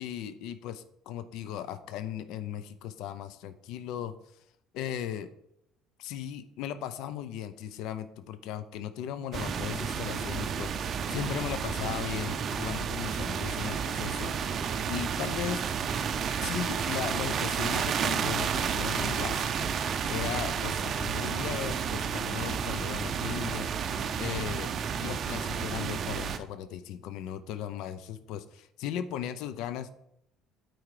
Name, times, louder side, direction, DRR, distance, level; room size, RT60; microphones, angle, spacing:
voice 1, 0.0-4.2 4.7-5.3 6.0-14.6 14.9-15.6 16.4-24.7 25.0-29.9, left 10 dB, 65° left, 13 dB, 0.5 m, -37 dB
sound 1, 9.3-26.4, right 7 dB, 35° right, 0.5 m, -31 dB
8.8 x 4.6 x 4.8 m, 0.75 s
cardioid pair, 175°, 0 cm